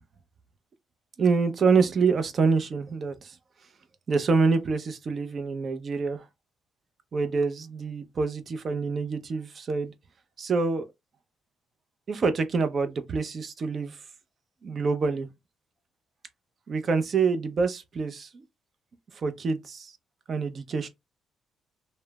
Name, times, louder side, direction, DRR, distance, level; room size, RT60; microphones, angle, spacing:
voice 1, 1.2-3.4 4.1-6.2 7.1-9.9 10.4-10.9 12.1-14.0 14.6-15.3 16.7-18.4 19.1-20.0 20.3-20.9, right 4 dB, 50° right, 0.5 m, -26 dB
3.0 x 2.0 x 2.2 m
cardioid pair, 90°, 0 cm